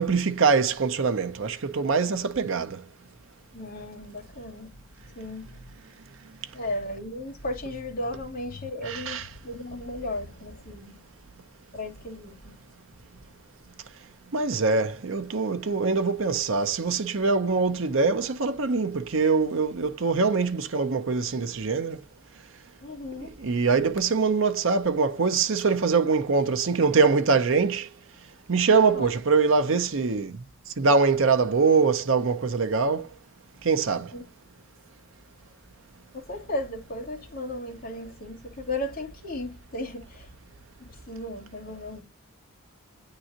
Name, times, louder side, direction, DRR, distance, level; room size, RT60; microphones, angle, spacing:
voice 1, 0.0-2.8 8.8-9.3 14.3-22.0 23.2-27.9 28.5-30.4 30.8-33.1 33.6-34.1, right 4 dB, 60° right, 0.7 m, -23 dB
voice 2, 3.5-4.8 5.0-5.7 6.5-11.0 11.7-12.6 22.8-23.4 28.9-29.1 34.1-34.2 36.1-40.3 40.8-42.0, left 1 dB, 45° left, 2.7 m, -35 dB
8.9 x 3.8 x 2.8 m
head